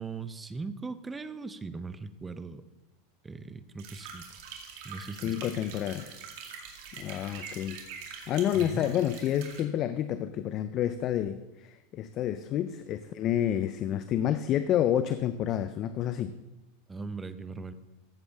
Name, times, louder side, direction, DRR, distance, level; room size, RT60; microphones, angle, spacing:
voice 1, 0.0-2.6 3.2-4.2 4.8-5.5 8.5-8.9 16.9-17.7, right 4 dB, 15° right, 12 dB, 0.7 m, -39 dB
sound 1, 3.8-9.6, right 6 dB, 65° right, 2.2 m, -44 dB
voice 2, 5.2-6.2 6.9-7.8 8.3-16.3, left 10 dB, 40° left, 11 dB, 0.5 m, -29 dB
14.5 x 7.2 x 3.5 m, 1.0 s
supercardioid pair, 120°, 0 cm